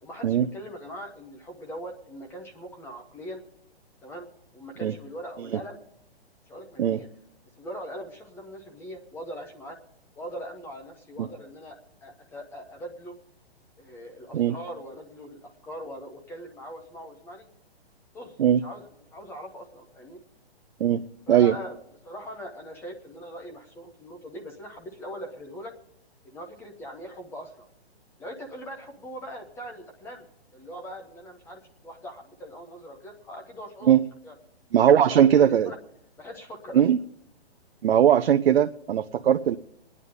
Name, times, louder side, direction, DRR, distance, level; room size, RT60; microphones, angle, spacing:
voice 1, 0.0-3.4 4.0-4.3 4.5-5.8 6.5-7.1 7.6-9.8 10.2-13.1 13.8-17.5 18.1-20.2 21.3-21.8 22.0-25.7 26.2-27.7 28.2-30.3 30.5-34.3 34.9-35.8 36.2-36.8, equal, 5° left, 3 dB, 0.7 m, -41 dB
voice 2, 34.7-35.7 36.7-37.0 37.8-39.6, right 9 dB, 65° right, 8 dB, 0.6 m, -19 dB
24.5 x 9.7 x 3.7 m, 0.82 s
hypercardioid pair, 150°, 32 cm